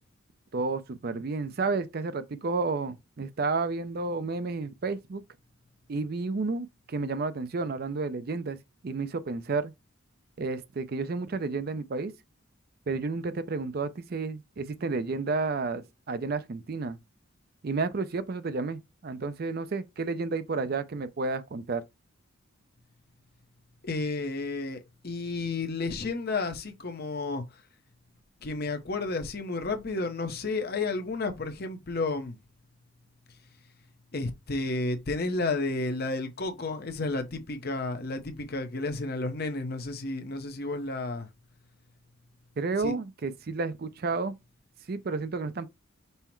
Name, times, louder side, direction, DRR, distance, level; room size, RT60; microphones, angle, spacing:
voice 1, 0.5-5.2 5.9-9.7 10.4-12.1 12.9-17.0 17.6-21.8 42.6-44.3 44.9-45.7, right 3 dB, 45° right, 0.4 m, -31 dB
voice 2, 23.8-27.4 28.4-32.4 34.1-41.3 42.8-42.9, left 3 dB, 45° left, 0.8 m, -32 dB
5.5 x 2.1 x 4.4 m
head